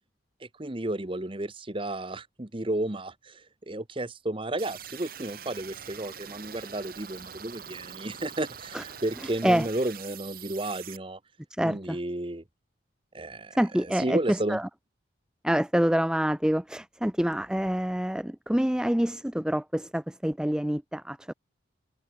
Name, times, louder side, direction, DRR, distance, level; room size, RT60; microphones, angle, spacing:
voice 1, 0.4-11.2 11.6-12.4 13.1-14.6, right 1 dB, 25° right, 1.1 m, -33 dB
sound 1, 4.6-11.0, right 8 dB, 50° right, 1.3 m, -44 dB
voice 2, 11.6-12.0 13.5-14.7 15.4-21.3, equal, 5° right, 0.4 m, -26 dB
head